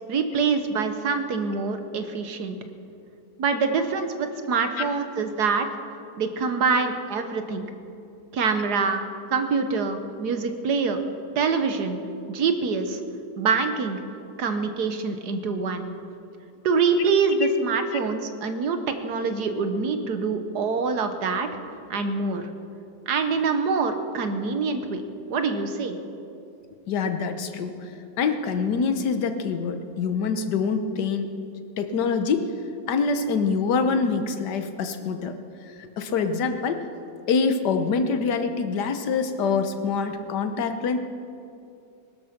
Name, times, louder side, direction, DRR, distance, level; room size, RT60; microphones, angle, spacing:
voice 1, 0.1-2.6 3.4-5.7 6.2-7.7 8.3-9.0 9.3-11.0 11.3-12.0 12.3-13.0 13.4-14.0 14.4-15.9 16.6-21.5 21.9-22.5 23.1-25.0 25.3-26.0, right 4 dB, 65° right, 8 dB, 1.6 m, -25 dB
voice 2, 26.9-27.8 28.2-31.3 31.8-32.5 32.9-35.3 35.8-36.8 37.3-41.0, left 5 dB, 70° left, 8 dB, 1.6 m, -25 dB
19.0 x 13.0 x 5.9 m, 2.6 s
omnidirectional pair, 1.9 m